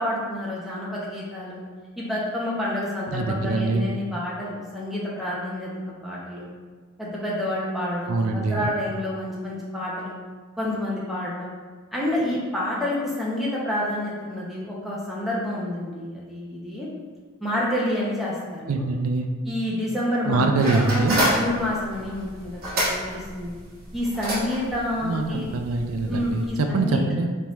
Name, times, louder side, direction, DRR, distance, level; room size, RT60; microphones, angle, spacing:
voice 1, 0.0-1.6 2.0-6.5 7.0-10.2 10.6-11.5 11.9-16.9 17.4-18.8 19.4-23.5 23.9-25.5 26.1-27.0, left 1 dB, ahead, -6 dB, 0.8 m, -28 dB
voice 2, 3.1-3.9 8.1-8.7 18.7-19.3 20.3-21.2 25.0-27.3, right 3 dB, 80° right, 4 dB, 0.4 m, -24 dB
sound 1, 20.6-26.5, equal, 45° right, 1.3 m, -29 dB
4.1 x 3.5 x 3.0 m, 1.5 s
head